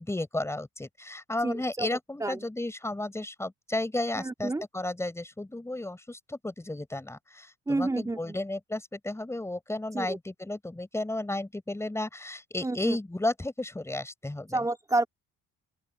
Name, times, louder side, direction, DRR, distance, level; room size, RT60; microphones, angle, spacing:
voice 1, 0.0-14.6, left 2 dB, 10° left, 4.7 m, -33 dB
voice 2, 1.4-1.9 2.2-2.5 4.2-4.6 7.7-8.4 9.9-10.2 12.6-13.0 14.5-15.1, right 2 dB, 10° right, 3.0 m, -29 dB
open air
cardioid pair, 145°, 31 cm